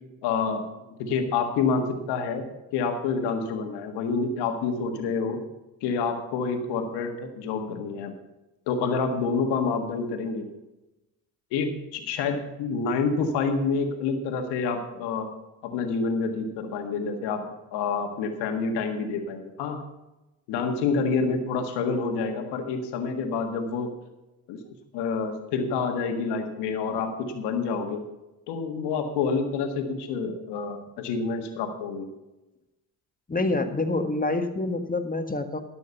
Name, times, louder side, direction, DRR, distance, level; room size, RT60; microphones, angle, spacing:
voice 1, 0.2-0.6 1.0-2.5 2.7-5.4 5.8-8.1 8.7-10.5 11.5-15.3 15.6-17.4 17.7-19.8 20.5-23.9 24.5-24.6 24.9-28.0 28.5-32.1, left 4 dB, 90° left, 5 dB, 1.7 m, -28 dB
voice 2, 33.3-35.6, left 2 dB, 20° left, 7 dB, 1.5 m, -27 dB
13.0 x 6.3 x 7.0 m, 1.0 s
supercardioid pair, 70°, 39 cm